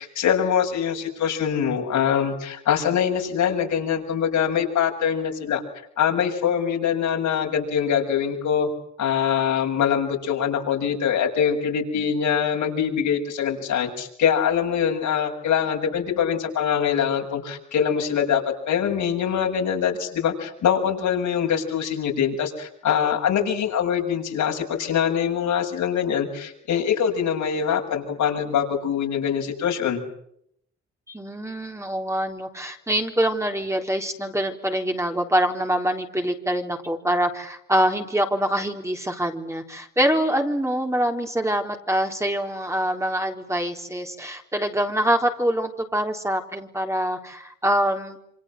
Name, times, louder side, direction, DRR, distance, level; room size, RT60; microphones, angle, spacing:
voice 1, 0.0-5.6 6.0-8.7 9.0-30.0, left 8 dB, 75° left, 2 dB, 7.2 m, -23 dB
voice 2, 31.1-48.2, right 1 dB, 10° right, 3 dB, 3.8 m, -25 dB
28.0 x 26.0 x 7.8 m, 0.72 s
cardioid pair, 90°, 30 cm